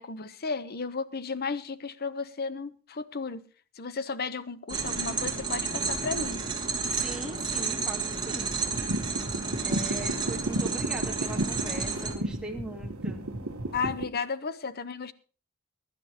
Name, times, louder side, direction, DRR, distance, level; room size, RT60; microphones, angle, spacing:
voice 1, 0.0-3.4 3.8-6.4 13.7-15.1, left 4 dB, 45° left, 0.9 m, -34 dB
sound 1, 4.7-12.1, right 4 dB, 20° right, 2.3 m, -31 dB
voice 2, 7.0-8.5 9.6-13.2, right 1 dB, 5° right, 2.3 m, -40 dB
sound 2, 8.5-14.0, right 1 dB, 70° right, 1.3 m, -33 dB
22.5 x 11.0 x 2.9 m
head